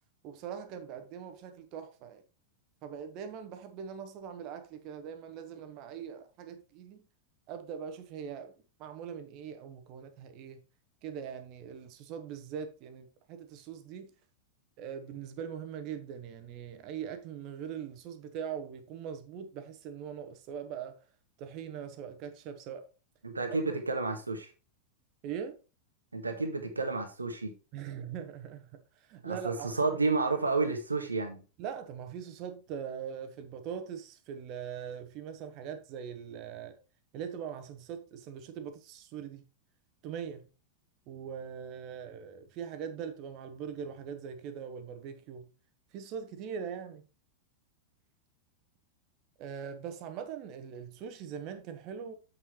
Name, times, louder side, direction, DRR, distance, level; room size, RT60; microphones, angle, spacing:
voice 1, 0.2-2.2 2.8-7.1 7.5-10.6 11.0-14.1 14.8-21.0 21.4-22.9 23.7-23.8 25.2-25.6 27.7-30.0 31.6-36.8 37.1-39.4 40.0-40.5 41.1-45.5 45.9-47.1 49.4-52.1, right 8 dB, 40° right, 1.3 m, -41 dB
voice 2, 23.2-24.5 26.1-27.5 29.2-31.4, right 3 dB, 80° right, 1.4 m, -31 dB
7.5 x 6.5 x 3.1 m
figure-of-eight pair, 90°, 0 cm